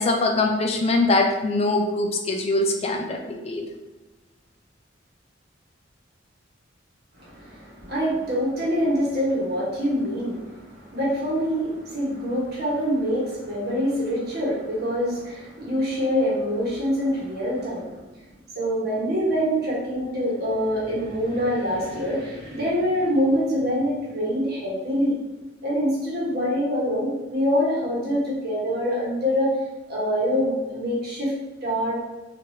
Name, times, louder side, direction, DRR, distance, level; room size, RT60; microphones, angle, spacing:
voice 1, 0.0-3.7, left 2 dB, 35° left, 2 dB, 0.4 m, -23 dB
voice 2, 7.2-18.0 18.5-25.1 25.6-29.5 29.9-31.3 31.6-32.0, equal, 60° right, -6 dB, 1.1 m, -25 dB
3.1 x 2.5 x 2.7 m, 1.1 s
head